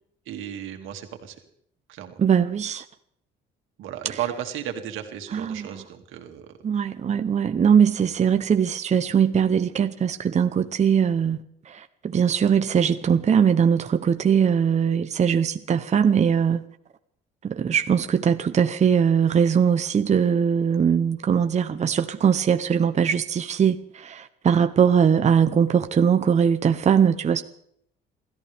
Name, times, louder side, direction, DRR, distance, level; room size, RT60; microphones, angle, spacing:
voice 1, 0.3-1.4 1.9-2.1 3.8-6.6, right 10 dB, 85° right, 2.5 m, -34 dB
voice 2, 2.2-2.8 6.6-11.4 12.1-16.6 17.4-23.8 24.4-27.4, right 7 dB, 35° right, 0.9 m, -20 dB
28.0 x 14.0 x 3.5 m
cardioid pair, 100°, 20 cm